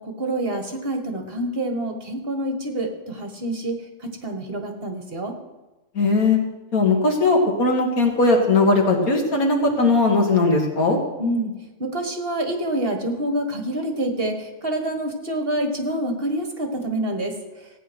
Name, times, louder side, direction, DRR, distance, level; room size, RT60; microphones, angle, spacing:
voice 1, 0.0-5.3 11.2-11.5 11.8-17.3, right 1 dB, 40° right, 4 dB, 1.7 m, -27 dB
voice 2, 6.0-6.4 6.7-11.0, left 3 dB, 80° left, 1 dB, 2.6 m, -19 dB
16.0 x 9.1 x 6.2 m, 1.1 s
omnidirectional pair, 1.5 m